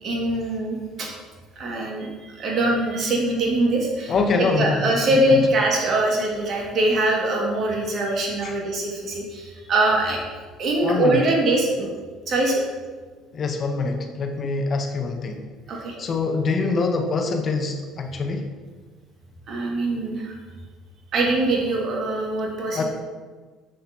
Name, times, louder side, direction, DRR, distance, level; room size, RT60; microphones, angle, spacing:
voice 1, 0.0-1.1 1.6-10.2 10.6-11.9 12.3-12.7 15.7-16.0 19.5-20.4 21.1-22.8, right 2 dB, 50° right, -1 dB, 1.8 m, -23 dB
voice 2, 4.1-5.0 8.4-8.5 10.8-11.2 13.3-15.4 16.0-18.5 22.7-22.8, left 4 dB, 45° left, 4 dB, 0.8 m, -24 dB
7.5 x 6.4 x 2.8 m, 1.4 s
supercardioid pair, 80°, 0 cm